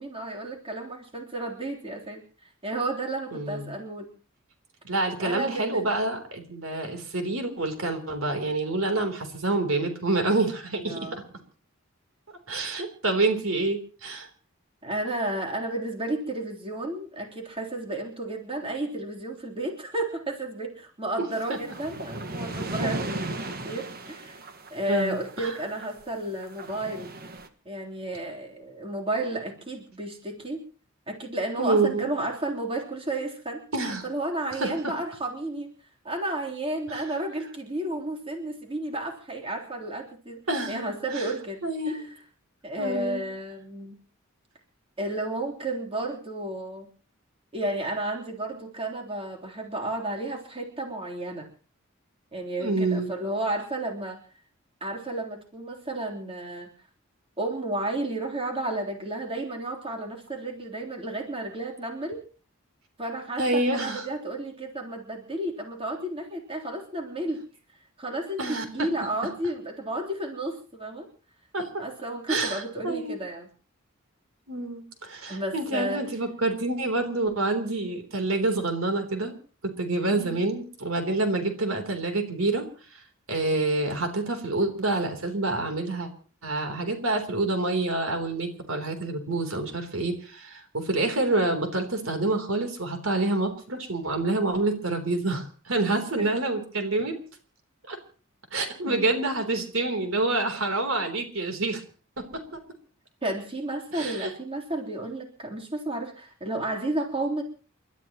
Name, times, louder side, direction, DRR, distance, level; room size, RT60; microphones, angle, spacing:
voice 1, 0.0-2.2 2.6-4.1 5.2-5.9 10.8-11.2 14.8-24.3 24.7-27.1 27.6-30.6 31.1-33.6 34.0-35.7 36.0-40.4 40.7-42.1 42.6-44.0 45.0-46.9 47.5-51.5 52.3-54.2 54.8-56.7 57.4-62.2 63.0-67.4 68.0-71.1 71.8-73.5 75.3-76.0 80.1-80.4 96.2-96.3 98.9-99.0 103.2-107.4, right 1 dB, 25° right, 0 dB, 3.5 m, -32 dB
voice 2, 3.3-3.7 4.8-11.2 12.5-14.3 21.2-21.3 22.8-23.1 24.9-25.5 31.6-32.1 33.7-34.0 34.5-34.7 36.9-37.0 40.5-40.8 41.1-41.3 41.6-42.1 42.8-43.2 52.6-53.1 63.4-64.1 68.4-68.9 71.5-71.7 72.3-73.2 74.5-79.3 79.6-82.6 82.9-83.0 83.3-86.1 86.4-97.1 97.9-98.0 98.5-101.8 103.9-104.3, right 2 dB, 80° right, 6 dB, 3.5 m, -27 dB
sound 1, 21.3-26.0 26.4-27.5, right 2 dB, 45° right, 1.6 m, -36 dB
30.0 x 13.0 x 3.0 m, 0.39 s
head